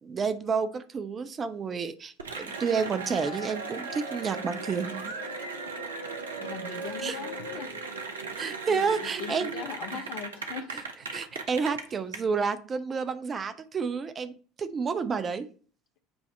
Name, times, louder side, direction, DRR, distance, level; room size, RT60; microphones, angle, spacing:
voice 1, 0.0-5.2 7.0-7.2 8.4-9.5 11.1-14.3 14.6-15.5, right 5 dB, 30° right, 11 dB, 0.6 m, -30 dB
Cheering / Applause, 2.2-12.2, right 4 dB, 80° right, 0.7 m, -37 dB
voice 2, 6.4-7.7 8.7-10.7, left 7 dB, 55° left, 7 dB, 1.0 m, -40 dB
7.9 x 2.8 x 4.4 m, 0.40 s
figure-of-eight pair, 70°, 0 cm